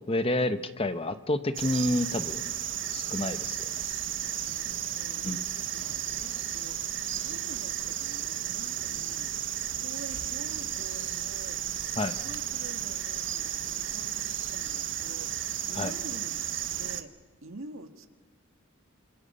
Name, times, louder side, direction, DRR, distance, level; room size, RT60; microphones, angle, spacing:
voice 1, 0.1-2.5 2.9-3.7 5.2-5.4 12.0-12.1 15.7-15.9, left 1 dB, 30° left, 10 dB, 0.9 m, -29 dB
sound 1, 1.5-17.0, right 10 dB, 60° right, 1.1 m, -33 dB
voice 2, 4.4-16.4 16.8-17.1 17.4-18.1, right 2 dB, 80° right, 7 dB, 1.7 m, -47 dB
28.0 x 26.5 x 5.5 m, 1.4 s
head